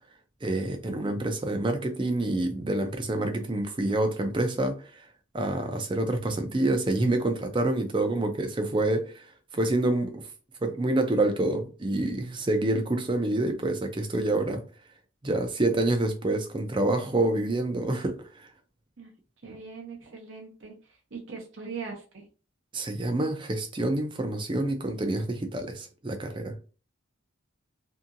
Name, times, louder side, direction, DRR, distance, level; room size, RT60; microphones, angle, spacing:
voice 1, 0.4-5.1 5.3-10.3 10.6-14.6 15.2-18.5 22.7-26.5, right 2 dB, 25° right, 0.4 m, -27 dB
voice 2, 19.4-22.3, right 5 dB, 60° right, 0.6 m, -41 dB
2.7 x 2.7 x 2.5 m
head